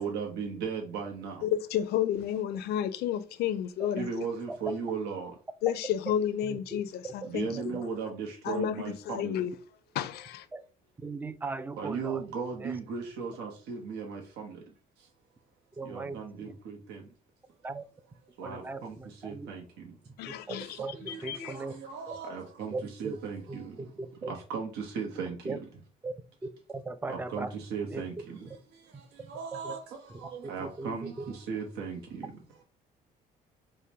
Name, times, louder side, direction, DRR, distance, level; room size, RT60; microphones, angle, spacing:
voice 1, 0.0-1.3 4.0-5.3 7.3-8.9 9.2-9.3 11.8-14.2 15.9-16.7 18.4-18.6 19.2-19.3 21.1-21.2 21.5-21.6 21.9-22.7 23.0-23.4 24.5-24.7 25.0-25.3 27.1-28.1 29.3-29.8 30.2-31.1 31.5-32.0, right 6 dB, 80° right, 0.9 m, -35 dB
voice 2, 1.4-4.1 5.6-7.8 8.4-9.5 9.9-10.5 20.2-21.6, left 10 dB, 70° left, 0.5 m, -31 dB
voice 3, 6.4-6.8 7.5-7.8 10.5-10.6 11.0-12.2 12.6-12.7 15.8-16.5 17.6-17.8 18.4-19.5 20.3-20.9 21.2-21.7 22.1-22.2 22.7-23.2 23.5-23.6 24.0-24.3 25.5-25.6 26.0-26.1 26.7-27.5 27.9-28.1 29.5-29.8 30.6-31.0, right 3 dB, 10° right, 0.3 m, -38 dB
4.9 x 2.1 x 2.8 m
cardioid pair, 110°, 17 cm